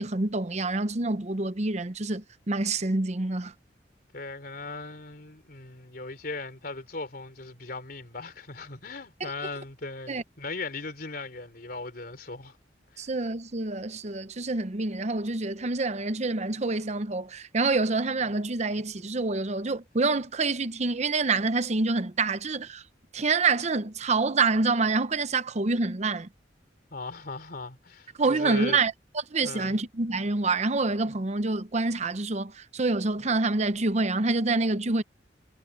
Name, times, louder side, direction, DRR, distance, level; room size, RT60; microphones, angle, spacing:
voice 1, 0.0-3.5 9.2-9.3 10.1-10.2 13.0-22.8 23.1-26.3 28.2-28.9 29.3-35.0, right 3 dB, 40° right, 0.8 m, -27 dB
voice 2, 4.1-12.6 12.9-13.1 26.9-28.8 29.4-29.8, left 3 dB, 55° left, 3.4 m, -38 dB
head